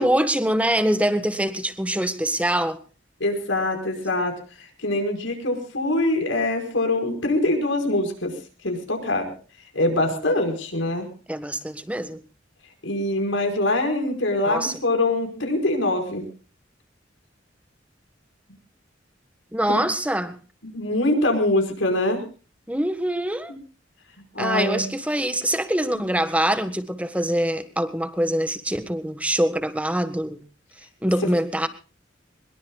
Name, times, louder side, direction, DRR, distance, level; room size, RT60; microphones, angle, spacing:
voice 1, 0.0-2.8 10.1-10.2 11.3-12.2 14.5-14.7 19.5-20.4 22.7-23.5 24.4-30.4 31.0-31.7, right 1 dB, 5° right, 1.5 m, -24 dB
voice 2, 3.2-8.3 8.6-9.3 9.7-11.1 12.8-16.2 19.7-19.8 20.6-22.2 24.3-24.9, left 2 dB, 85° left, 5.2 m, -24 dB
22.5 x 22.0 x 2.4 m
head